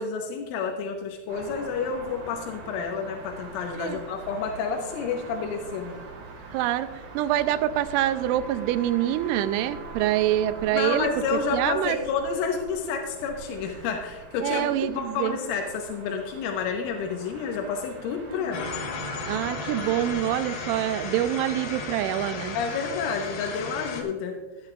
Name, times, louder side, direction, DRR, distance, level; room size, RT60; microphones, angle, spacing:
voice 1, 0.0-6.0 10.7-18.7 22.6-24.4, left 5 dB, 90° left, 2 dB, 3.5 m, -30 dB
sound 1, 1.3-20.1, right 4 dB, 65° right, 5.1 m, -44 dB
voice 2, 6.5-12.0 14.4-15.4 18.3-18.6 19.3-22.6, right 12 dB, 85° right, 12 dB, 2.9 m, -26 dB
sound 2, 8.0-11.6 12.2-12.3, right 3 dB, 10° right, 3.0 m, -43 dB
sound 3, 18.5-24.0, left 4 dB, 70° left, 3.4 m, -34 dB
15.5 x 11.5 x 2.4 m, 1.1 s
omnidirectional pair, 5.5 m